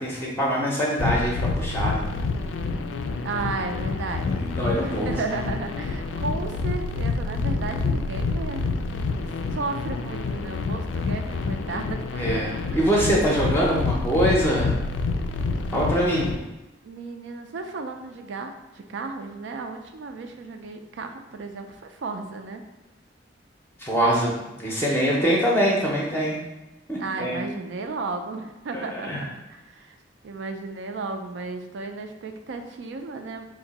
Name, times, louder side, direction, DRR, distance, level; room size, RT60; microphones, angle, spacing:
voice 1, 0.0-2.0 4.3-5.1 12.2-14.8 15.7-16.3 23.8-26.4 26.9-27.4 28.7-29.2, equal, 10° left, -4 dB, 0.5 m, -24 dB
sound 1, 1.0-16.3, left 3 dB, 90° left, 0.3 m, -28 dB
voice 2, 3.2-4.5 4.8-8.7 9.5-12.4 16.8-22.6 25.1-25.4 27.0-30.0 30.2-33.5, right 3 dB, 70° right, 5 dB, 0.4 m, -34 dB
2.8 x 2.6 x 4.0 m, 1.0 s
head